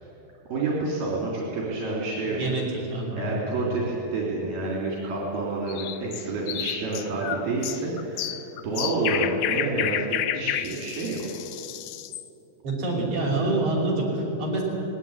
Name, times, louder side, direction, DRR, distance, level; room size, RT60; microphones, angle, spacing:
voice 1, 0.5-2.4 3.1-8.4 8.6-11.3, right 2 dB, 75° right, -4 dB, 5.2 m, -28 dB
voice 2, 2.3-3.9 12.6-14.6, right 2 dB, 55° right, -2 dB, 6.6 m, -27 dB
sound 1, 5.7-12.3, left 12 dB, 75° left, 1.8 m, -31 dB
20.0 x 18.0 x 9.9 m, 2.7 s
omnidirectional pair, 4.1 m